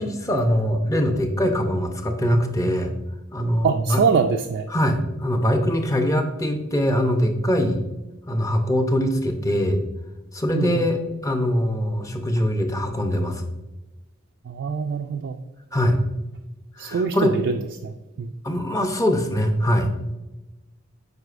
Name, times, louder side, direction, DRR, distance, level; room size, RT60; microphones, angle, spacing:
voice 1, 0.0-2.9 3.3-4.0 4.7-7.8 8.3-9.8 10.3-13.5 15.7-16.0 16.8-17.4 18.4-19.9, equal, 15° left, 4 dB, 0.6 m, -22 dB
voice 2, 3.6-4.7 10.6-10.8 14.5-15.4 16.8-17.6 17.8-17.9 18.2-18.3, right 5 dB, 60° right, 4 dB, 0.3 m, -23 dB
7.8 x 5.1 x 2.5 m, 1.1 s
head